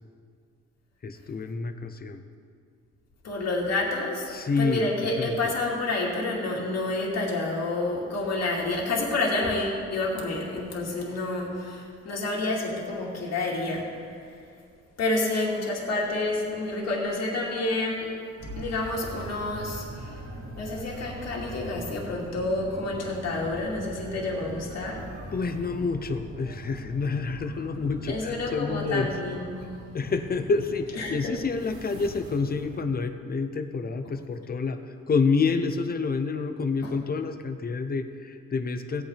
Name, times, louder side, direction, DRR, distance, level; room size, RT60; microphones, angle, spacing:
voice 1, 1.0-2.2 4.3-4.8 5.2-5.5 25.3-29.1 29.9-39.0, left 4 dB, 30° left, 8 dB, 0.8 m, -28 dB
voice 2, 3.2-13.9 14.2-14.3 15.0-18.1 18.6-20.2 20.6-25.0 28.1-29.6 31.0-31.4 36.8-36.9, left 2 dB, 60° left, -3 dB, 2.4 m, -29 dB
sound 1, 18.4-32.8, right 1 dB, 70° right, 2.5 m, -42 dB
17.0 x 8.7 x 3.5 m, 2.3 s
cardioid pair, 90°, 30 cm